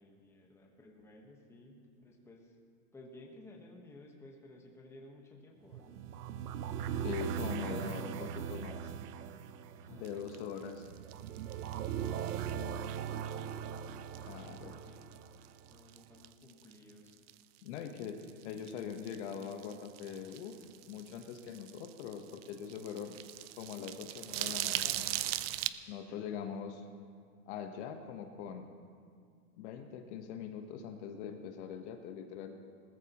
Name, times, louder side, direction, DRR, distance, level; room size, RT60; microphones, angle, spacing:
voice 1, 0.0-2.6 2.9-6.0 9.8-10.7 11.8-13.7 14.1-15.1 15.4-17.2 26.2-26.5, left 1 dB, 5° left, 0 dB, 1.2 m, -57 dB
sound 1, 5.7-15.8, right 8 dB, 80° right, 0.8 m, -40 dB
voice 2, 7.0-8.9 9.9-10.9 14.2-14.7 17.6-18.2 18.4-23.2 23.6-25.2 25.9-26.8 27.5-28.7 29.6-32.6, left 7 dB, 45° left, 5 dB, 1.1 m, -42 dB
sound 2, 10.0-13.8 14.1-14.7 15.0-15.2 15.4-17.4 17.7-25.7, right 14 dB, 45° right, 0.4 m, -39 dB
19.5 x 13.5 x 3.0 m, 2.1 s
hypercardioid pair, 140°, 46 cm